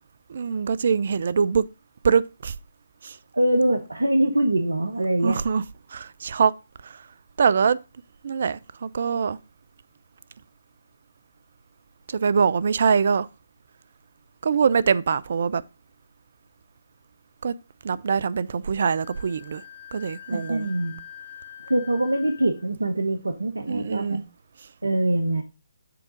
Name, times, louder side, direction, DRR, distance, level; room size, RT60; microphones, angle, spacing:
voice 1, 0.3-1.6 2.0-2.5 3.0-3.2 5.2-5.6 5.9-6.5 6.8-7.0 7.4-7.8 8.2-9.4 12.1-13.3 14.4-15.6 17.4-17.5 17.8-19.6 19.9-20.7 23.7-24.2, right 6 dB, 55° right, 0.4 m, -23 dB
voice 2, 3.3-5.4 20.3-21.0 21.7-24.2 24.8-25.4, right 1 dB, 85° right, 0.8 m, -23 dB
Wind instrument woodwind instrument, 19.0-22.7, left 10 dB, 30° right, 2.2 m, -44 dB
7.6 x 3.6 x 5.1 m
figure-of-eight pair, 145°, 0 cm